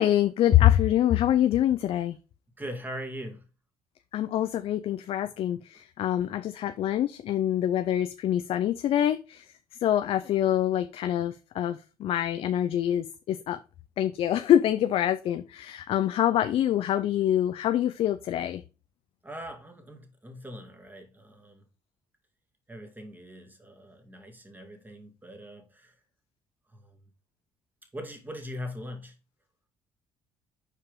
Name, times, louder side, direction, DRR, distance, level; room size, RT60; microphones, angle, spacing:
voice 1, 0.0-2.2 4.1-9.5 9.8-13.6 14.0-18.6, left 11 dB, 65° left, 0.5 m, -25 dB
voice 2, 2.6-3.5 19.2-21.7 22.7-25.9 26.7-27.0 27.9-29.2, equal, 15° right, 2.2 m, -41 dB
5.7 x 4.7 x 5.2 m
supercardioid pair, 75°, 11 cm